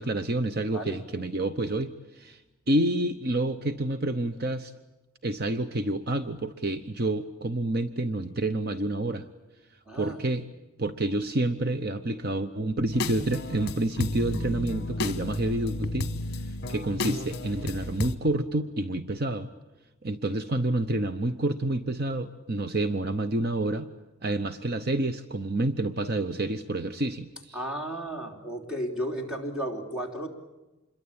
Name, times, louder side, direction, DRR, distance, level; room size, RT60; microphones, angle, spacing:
voice 1, 0.0-2.4 2.7-4.7 5.2-9.2 10.0-10.5 10.8-16.1 16.7-19.5 20.0-23.9 24.2-27.6, right 2 dB, 45° right, 10 dB, 0.8 m, -28 dB
voice 2, 0.7-1.0 9.9-10.2 27.5-30.3, right 1 dB, 5° right, -1 dB, 3.3 m, -33 dB
sound 1, 12.9-18.2, left 2 dB, 50° left, 1.3 m, -32 dB
27.0 x 22.0 x 8.8 m, 1.0 s
head